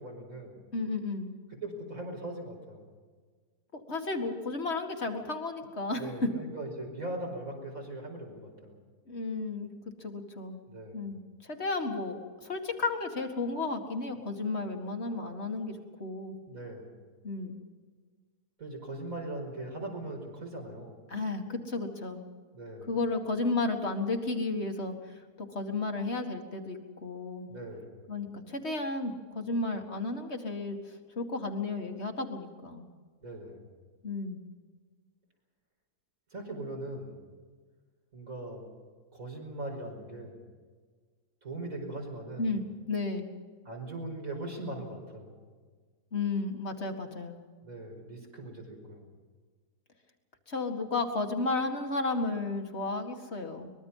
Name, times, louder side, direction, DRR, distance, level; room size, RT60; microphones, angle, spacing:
voice 1, 0.0-0.6 1.6-2.8 5.9-8.8 10.7-11.1 16.5-17.0 18.6-21.0 22.5-22.9 27.5-28.0 33.2-33.7 36.3-37.2 38.1-38.7 39.1-40.4 41.4-42.5 43.7-45.4 47.6-49.0, right 1 dB, 55° right, 1 dB, 5.6 m, -40 dB
voice 2, 0.7-1.3 3.7-6.3 9.1-9.7 10.0-10.6 10.9-16.4 17.2-17.6 21.1-22.3 22.9-27.5 28.1-32.9 34.0-34.5 42.4-43.3 46.1-47.4 50.5-53.7, left 3 dB, 40° left, 4 dB, 2.3 m, -33 dB
24.0 x 21.5 x 5.6 m, 1.5 s
omnidirectional pair, 1.7 m